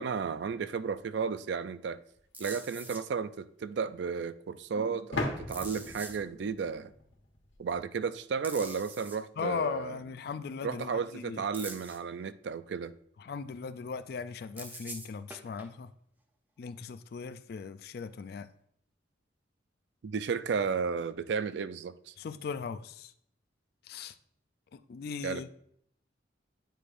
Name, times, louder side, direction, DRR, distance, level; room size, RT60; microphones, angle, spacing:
voice 1, 0.0-2.0 2.4-6.9 7.6-10.0 10.6-12.9 20.0-22.1 25.2-25.5, right 5 dB, 70° right, 0.4 m, -33 dB
sound 1, 2.1-2.2 5.1-7.8, left 2 dB, 85° left, 1.3 m, -38 dB
sound 2, 2.3-3.0 5.5-6.2 8.4-9.2 11.5-12.0 14.6-15.7 18.1-18.2, right 2 dB, 10° right, 0.6 m, -44 dB
voice 2, 9.4-11.5 13.2-15.9 16.6-18.5 22.2-23.1 23.9-24.1 24.7-25.5, left 5 dB, 55° left, 0.3 m, -38 dB
9.1 x 4.9 x 2.5 m
head